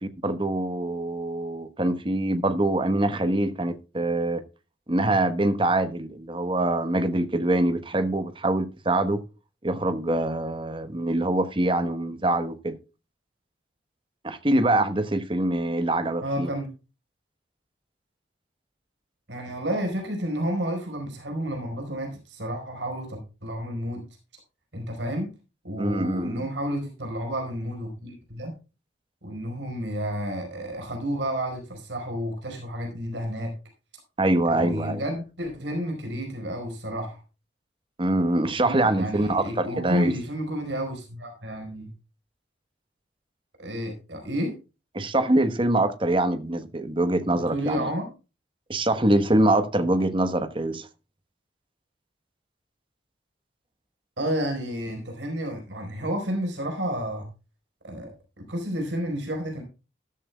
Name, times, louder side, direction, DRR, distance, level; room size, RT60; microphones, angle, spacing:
voice 1, 0.0-4.4 4.9-9.2 9.6-12.8 14.2-16.5 25.8-26.5 34.2-35.0 38.0-40.1 44.9-47.9 48.7-50.9, right 1 dB, 30° right, 1.1 m, -24 dB
voice 2, 16.2-16.7 19.3-24.0 24.7-25.3 25.6-28.5 29.2-33.5 34.5-37.2 38.6-41.9 43.6-44.5 47.3-48.1 54.2-57.3 57.8-59.6, equal, 90° right, 4.5 m, -31 dB
13.5 x 13.0 x 2.3 m
head